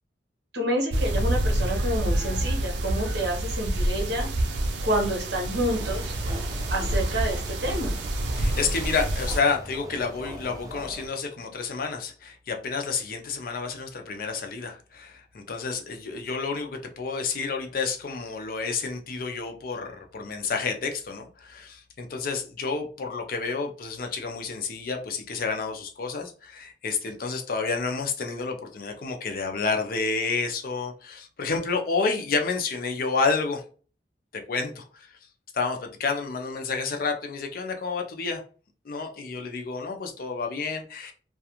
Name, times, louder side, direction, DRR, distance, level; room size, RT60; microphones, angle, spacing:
voice 1, 0.5-4.3 4.8-6.1 6.7-7.9, equal, 65° right, 0.9 m, -28 dB
sound 1, 0.9-9.4, right 1 dB, 85° right, 0.5 m, -27 dB
sound 2, 5.5-11.1, equal, 20° right, 0.5 m, -41 dB
voice 2, 8.4-33.6 34.5-34.9 35.5-38.4 38.9-41.1, left 4 dB, 55° left, 0.4 m, -30 dB
2.4 x 2.3 x 2.8 m
head